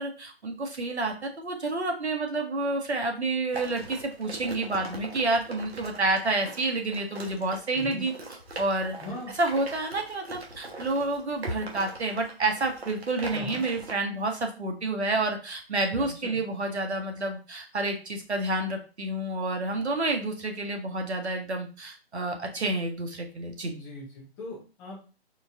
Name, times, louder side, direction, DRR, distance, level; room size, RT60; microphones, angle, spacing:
voice 1, 0.0-8.1 8.6-8.9 9.4-23.7, right 2 dB, 85° right, 3 dB, 1.2 m, -29 dB
sound 1, 3.5-13.9, right 2 dB, 70° right, 1.3 m, -41 dB
voice 2, 7.7-8.0 9.0-9.3 13.3-13.6 15.9-16.4 23.7-25.0, left 2 dB, 10° left, -4 dB, 0.5 m, -40 dB
4.5 x 2.6 x 3.5 m, 0.34 s
figure-of-eight pair, 145°, 32 cm